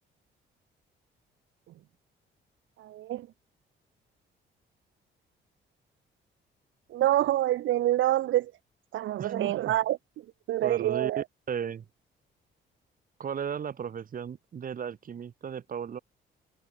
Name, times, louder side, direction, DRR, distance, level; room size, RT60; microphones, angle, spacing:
voice 1, 2.8-3.3 6.9-8.5 8.9-10.0 10.5-11.2, right 14 dB, 75° right, 0.9 m, -26 dB
voice 2, 9.2-9.7 10.6-11.8 13.2-16.0, right 7 dB, 45° right, 1.1 m, -35 dB
cardioid pair, 90°, 20 cm